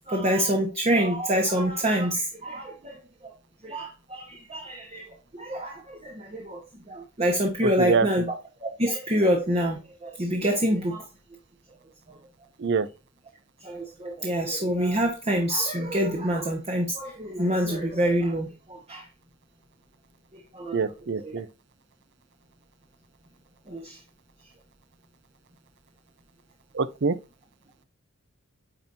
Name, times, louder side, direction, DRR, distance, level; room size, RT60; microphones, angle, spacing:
voice 1, 0.0-3.3 3.6-11.1 12.1-12.2 13.6-19.1 20.3-20.8 21.2-21.4 23.7-24.0, equal, 30° right, 1.0 m, -27 dB
voice 2, 20.7-21.5 26.7-27.1, right 5 dB, 55° right, 0.6 m, -24 dB
8.8 x 4.5 x 2.6 m
head